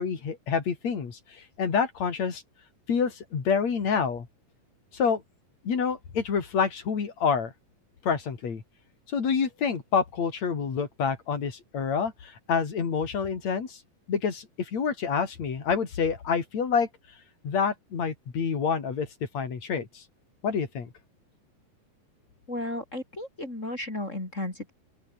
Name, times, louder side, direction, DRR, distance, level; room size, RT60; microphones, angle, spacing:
voice 1, 0.0-2.4 2.9-4.3 4.9-5.2 5.6-7.5 8.0-8.6 9.1-13.8 14.1-16.9 17.4-19.1 19.3-20.0 20.4-20.9, left 6 dB, 55° left, 4.5 m, -27 dB
voice 2, 22.5-24.7, left 1 dB, 20° left, 4.6 m, -34 dB
open air
omnidirectional pair, 3.9 m